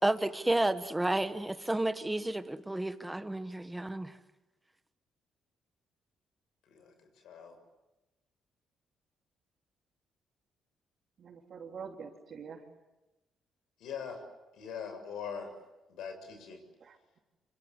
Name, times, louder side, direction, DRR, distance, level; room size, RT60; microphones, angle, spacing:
voice 1, 0.0-4.1, right 1 dB, 10° right, 1.5 m, -31 dB
voice 2, 7.2-7.6 13.8-14.2 14.5-15.5 15.9-16.6, left 7 dB, 80° left, 7.2 m, -42 dB
voice 3, 11.2-12.6 16.8-17.2, right 6 dB, 60° right, 3.8 m, -46 dB
27.0 x 26.5 x 8.3 m
cardioid pair, 90°, 0 cm